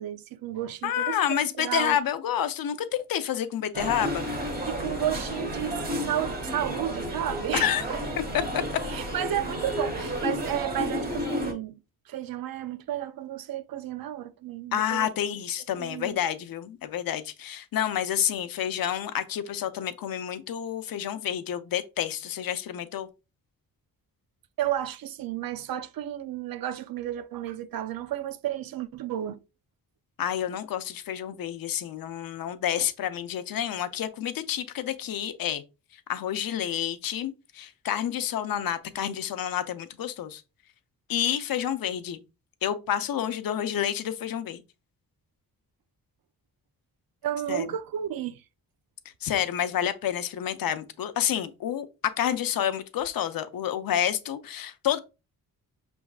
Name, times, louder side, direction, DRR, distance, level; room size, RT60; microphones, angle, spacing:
voice 1, 0.0-2.0 4.7-8.0 8.9-15.1 15.7-16.2 24.6-29.4 32.8-32.9 47.2-48.4, right 11 dB, 70° right, 0.5 m, -32 dB
voice 2, 0.8-4.3 7.5-7.8 8.3-8.6 14.7-23.1 30.2-35.6 36.1-40.4 41.1-42.2 42.6-44.6 47.5-47.7 49.2-51.9 52.2-55.0, left 10 dB, 65° left, 0.6 m, -29 dB
sound 1, 3.7-11.5, equal, 25° right, 1.2 m, -32 dB
6.1 x 3.5 x 2.3 m
wide cardioid pair, 130°, 36 cm